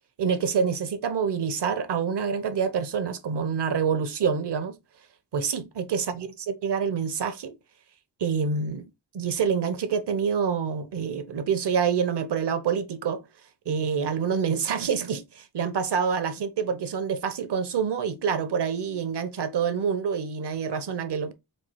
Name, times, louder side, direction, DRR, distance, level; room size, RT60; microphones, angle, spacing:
voice 1, 0.2-4.8 5.3-7.5 8.2-8.9 9.1-13.2 13.7-21.3, right 6 dB, 65° right, 0.9 m, -27 dB
4.4 x 2.4 x 4.5 m
cardioid pair, 65°, 44 cm